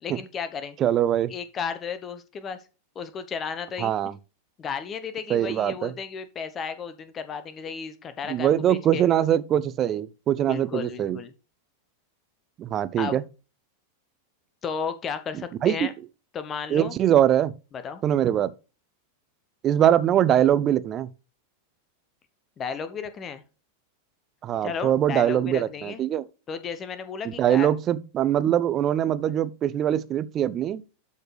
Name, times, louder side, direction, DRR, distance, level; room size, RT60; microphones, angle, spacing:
voice 1, 0.0-0.8 1.3-2.6 2.9-3.9 4.6-9.0 10.5-11.3 13.0-13.2 14.6-15.9 16.3-16.9 17.8-18.0 22.6-23.4 24.6-26.0 26.5-27.7, left 6 dB, 25° left, 1.0 m, -33 dB
voice 2, 0.8-1.3 3.8-4.1 5.3-5.9 8.3-11.2 12.6-13.2 15.6-15.9 16.7-17.5 18.0-18.5 19.6-21.1 24.4-26.2 27.2-30.8, right 10 dB, 30° right, 0.7 m, -22 dB
12.0 x 4.4 x 3.3 m
figure-of-eight pair, 90°, 0 cm